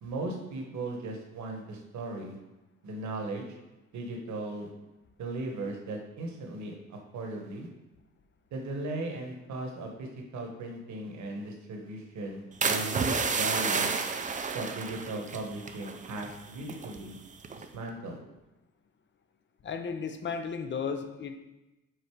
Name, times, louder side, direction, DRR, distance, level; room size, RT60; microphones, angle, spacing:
voice 1, 0.0-2.4 2.8-3.4 3.9-4.7 5.2-7.7 8.5-13.9 14.5-17.2 17.6-18.2, right 2 dB, 70° right, 2 dB, 1.2 m, -37 dB
sound 1, 12.6-16.4 16.6-17.0 17.4-17.8, right 5 dB, 25° right, 0.5 m, -31 dB
voice 2, 19.6-21.4, left 6 dB, 40° left, 8 dB, 0.6 m, -34 dB
5.1 x 3.9 x 4.6 m, 1.0 s
cardioid pair, 90°, 30 cm